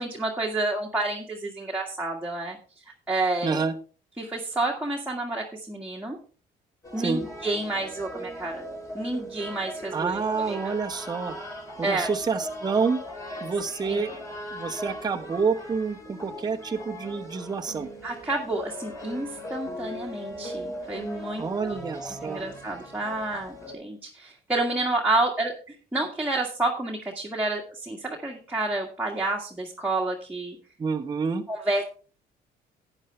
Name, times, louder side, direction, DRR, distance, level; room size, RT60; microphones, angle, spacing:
voice 1, 0.0-2.6 3.1-3.6 4.2-6.2 6.9-8.6 8.9-10.7 11.8-12.1 13.9-14.2 18.0-21.8 22.0-30.6 31.5-31.8, right 2 dB, 10° right, -2 dB, 1.7 m, -29 dB
voice 2, 3.4-3.8 7.0-7.2 9.9-11.4 11.8-13.0 13.4-14.1 14.5-17.9 21.4-22.4 30.8-31.4, right 5 dB, 25° right, 4 dB, 1.0 m, -28 dB
sound 1, 6.8-23.8, equal, 20° left, 3.6 m, -39 dB
11.5 x 9.2 x 3.3 m, 0.38 s
cardioid pair, 110°, 17 cm